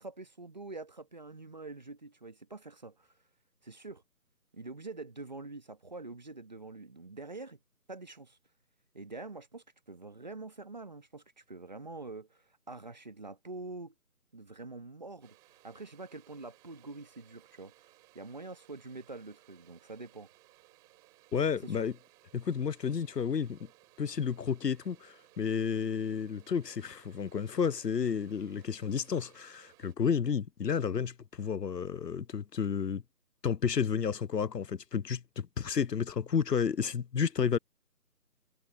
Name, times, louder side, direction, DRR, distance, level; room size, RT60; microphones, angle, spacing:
voice 1, 0.0-3.1 3.6-4.0 4.5-7.6 7.9-8.4 8.9-13.9 14.3-15.4 15.6-17.7 18.2-20.3 21.6-21.8, right 3 dB, 25° right, 1.6 m, -45 dB
sound 1, 15.2-29.9, right 22 dB, 5° right, 6.9 m, -63 dB
voice 2, 21.3-21.9 22.3-23.7 24.0-33.0 33.4-37.6, left 7 dB, 85° left, 0.7 m, -31 dB
figure-of-eight pair, 165°, 48 cm